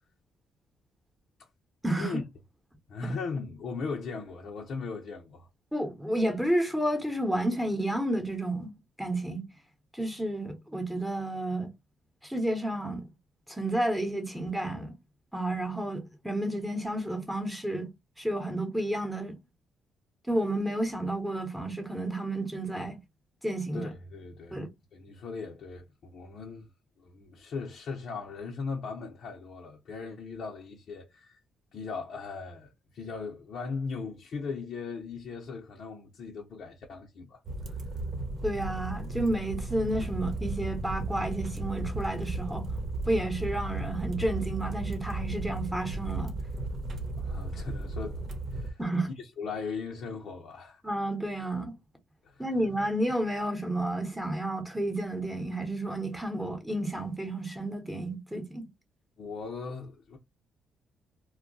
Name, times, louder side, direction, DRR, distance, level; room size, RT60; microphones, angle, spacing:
voice 1, 1.8-2.2 5.7-8.7 9.0-9.4 9.9-11.7 12.2-13.0 13.5-14.9 15.3-17.9 18.2-19.4 20.3-23.0 23.4-23.9 24.5-24.7 38.4-42.7 43.1-46.4 48.8-49.1 50.8-51.7 52.4-58.7, right 1 dB, 5° right, 0.9 m, -31 dB
voice 2, 2.9-5.5 23.7-24.6 24.9-26.7 27.0-31.4 31.7-37.8 47.2-48.8 49.2-50.8 52.2-52.6 59.2-60.2, left 4 dB, 65° left, 0.6 m, -38 dB
sound 1, 37.4-48.7, right 2 dB, 50° right, 0.9 m, -36 dB
sound 2, 39.9-48.5, right 3 dB, 30° right, 0.5 m, -40 dB
2.3 x 2.1 x 3.8 m
cardioid pair, 90°, 0 cm